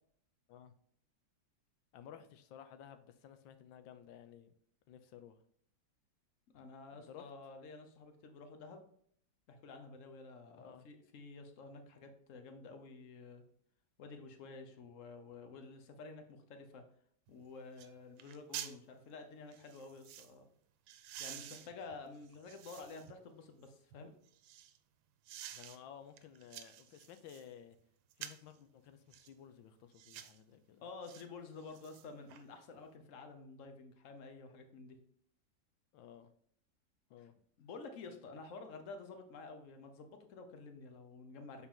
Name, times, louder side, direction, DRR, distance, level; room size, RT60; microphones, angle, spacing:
voice 1, 1.9-4.5 4.9-5.4 7.1-7.3 10.6-10.9 25.5-27.8 28.2-30.9 35.9-36.3 37.1-37.3 38.0-38.2, left 9 dB, 85° left, 9 dB, 1.3 m, -55 dB
voice 2, 6.5-8.9 9.5-13.4 14.0-16.8 17.3-20.5 21.2-24.1 30.8-35.0 37.2-37.3 37.6-41.7, left 4 dB, 50° left, 6 dB, 1.0 m, -51 dB
sound 1, 17.3-17.4 17.8-17.9 18.2-18.8 19.5-20.3 20.9-23.1 23.6-24.8 25.3-25.8 26.2-27.5 28.1-28.5 29.1-29.3 29.9-30.4 31.0-31.2 31.6-32.4 32.8-32.9, right 11 dB, 85° right, 1.4 m, -50 dB
6.9 x 4.2 x 3.7 m, 0.64 s
omnidirectional pair, 2.1 m